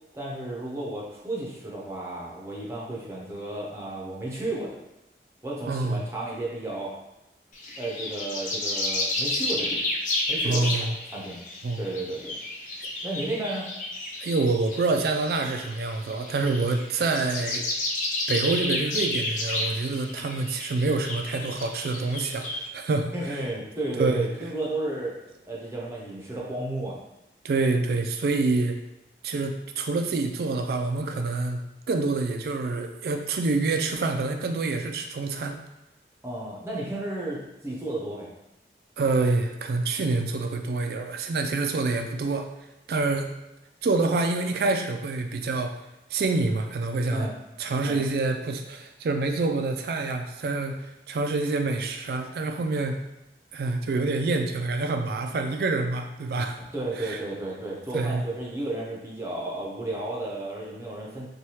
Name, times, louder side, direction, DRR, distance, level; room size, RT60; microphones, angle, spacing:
voice 1, 0.1-4.7 5.4-6.9 7.8-9.8 10.3-10.7 11.1-11.4 11.8-12.4 13.0-13.7 20.1-20.2 23.1-25.2 25.4-27.0 36.2-38.3 47.1-47.3 47.8-48.0 56.7-61.3, right 2 dB, 15° right, -5 dB, 0.6 m, -33 dB
voice 2, 5.7-6.0 10.4-10.9 11.6-11.8 14.2-17.7 18.3-23.5 24.0-24.3 27.4-28.8 29.2-31.6 31.9-35.6 39.0-42.5 42.9-43.3 43.8-45.7 46.1-47.3 47.6-53.0 53.5-56.6 57.0-57.2 57.9-58.2, right 3 dB, 60° right, 5 dB, 0.3 m, -27 dB
sound 1, 7.5-22.7, left 2 dB, 45° left, 0.4 m, -31 dB
3.2 x 2.3 x 2.8 m, 0.92 s
head